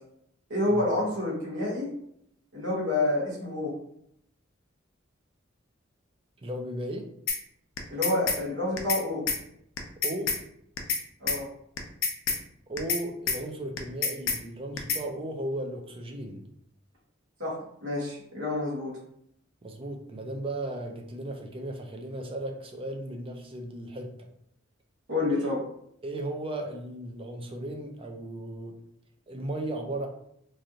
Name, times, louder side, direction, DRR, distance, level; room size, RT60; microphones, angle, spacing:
voice 1, 0.5-1.9 2.5-3.7 7.9-9.2 11.2-11.5 17.4-17.5 17.8-18.9 25.1-25.6, left 2 dB, 65° right, -6 dB, 1.2 m, -28 dB
voice 2, 6.4-7.1 10.0-10.3 12.7-16.4 19.6-24.1 25.3-25.5 26.0-28.8 29.3-30.1, right 1 dB, 25° right, 2 dB, 0.5 m, -36 dB
sound 1, 7.3-7.4 7.8-8.4 8.8-9.0 9.3-9.4 9.8-10.4 10.8-11.0 11.3-11.4 11.8-12.4 12.8-13.0 13.3-13.4 13.8-14.4 14.8-15.0, left 5 dB, 85° left, 0.5 m, -27 dB
3.1 x 2.5 x 2.7 m, 0.72 s
head